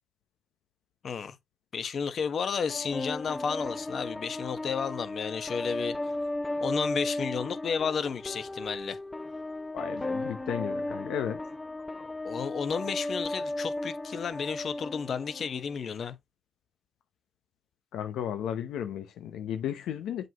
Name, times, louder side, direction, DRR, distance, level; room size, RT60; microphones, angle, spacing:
voice 1, 1.0-1.4 1.7-6.1 6.6-9.0 12.0-16.2, left 6 dB, 50° left, 1.1 m, -32 dB
sound 1, 2.7-15.7, left 2 dB, 15° left, 0.4 m, -35 dB
voice 2, 9.7-11.4 17.9-20.3, left 9 dB, 80° left, 0.7 m, -34 dB
7.6 x 5.3 x 2.9 m
cardioid pair, 90°, 0 cm